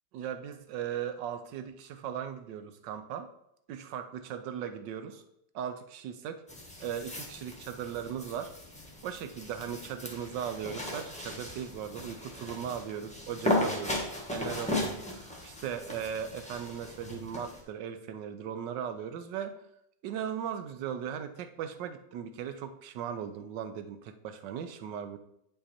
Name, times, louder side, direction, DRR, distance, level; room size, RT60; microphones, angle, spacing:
voice 1, 0.1-3.3 3.7-5.2 5.5-6.4 6.8-8.5 9.0-14.0 14.3-19.6 20.0-25.2, right 8 dB, 70° right, 9 dB, 1.3 m, -38 dB
sound 1, 6.5-17.6, left 1 dB, 5° left, 1.1 m, -36 dB
8.3 x 5.5 x 4.2 m, 0.77 s
omnidirectional pair, 2.1 m